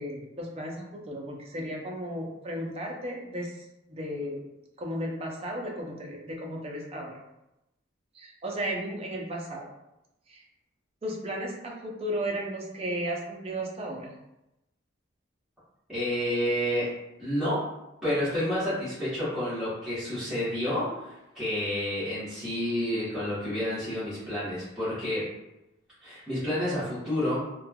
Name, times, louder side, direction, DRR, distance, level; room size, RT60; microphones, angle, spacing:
voice 1, 0.0-4.4 4.8-7.2 8.1-9.7 10.3-10.4 11.0-14.1, equal, 30° right, -1 dB, 0.4 m, -34 dB
voice 2, 15.9-16.9 17.2-17.6 18.0-25.2 26.0-27.4, left 1 dB, 5° right, -15 dB, 1.1 m, -29 dB
3.1 x 2.1 x 2.2 m, 0.91 s
head